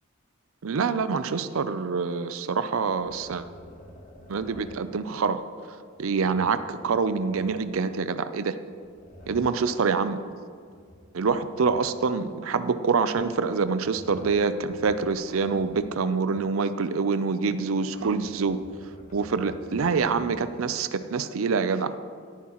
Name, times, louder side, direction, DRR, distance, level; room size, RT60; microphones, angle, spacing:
voice 1, 0.6-3.5 4.3-5.4 5.7-8.6 9.3-10.2 11.1-18.6 19.1-21.9, right 5 dB, 75° right, 12 dB, 0.5 m, -26 dB
sound 1, 2.8-4.9 5.9-8.1 8.6-10.0 10.7-12.2 13.5-16.0 16.3-16.4 17.8-20.6, equal, 35° left, 1.5 m, -49 dB
16.5 x 9.4 x 3.0 m, 2.1 s
head